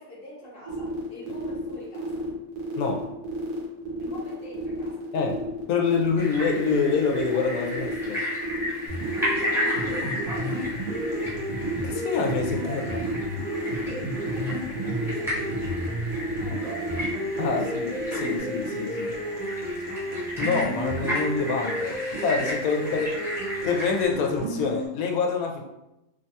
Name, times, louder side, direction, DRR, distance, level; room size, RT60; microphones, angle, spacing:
voice 1, 0.0-2.3 4.0-5.1 9.1-10.8 13.6-14.0 14.3-18.2 19.0-19.4 22.6-23.1, left 1 dB, 45° left, -6 dB, 1.0 m, -46 dB
sound 1, 0.7-18.4, right 2 dB, 85° right, 1.3 m, -35 dB
voice 2, 5.7-8.2 11.8-13.0 17.4-19.1 20.4-22.0 22.2-23.1 23.6-25.6, left 5 dB, 75° left, 1 dB, 1.0 m, -26 dB
sound 2, 6.2-24.1, left 1 dB, 5° right, 0.5 m, -34 dB
sound 3, 8.9-24.9, right 1 dB, 65° right, 1.1 m, -32 dB
3.0 x 2.2 x 2.7 m, 0.93 s
omnidirectional pair, 1.6 m